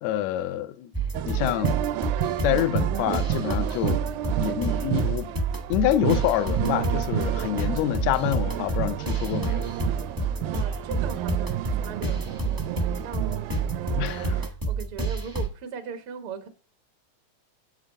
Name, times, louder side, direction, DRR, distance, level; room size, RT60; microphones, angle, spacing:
voice 1, 0.0-0.9 1.3-1.8 2.4-4.0 4.4-5.3 5.7-9.7 14.0-14.4, left 13 dB, 75° left, 1.8 m, -27 dB
sound 1, 0.9-15.5, right 3 dB, 15° right, 0.7 m, -29 dB
sound 2, 1.1-14.5, right 12 dB, 90° right, 2.0 m, -31 dB
voice 2, 10.5-16.5, right 7 dB, 55° right, 1.8 m, -39 dB
7.8 x 6.2 x 5.3 m
omnidirectional pair, 3.4 m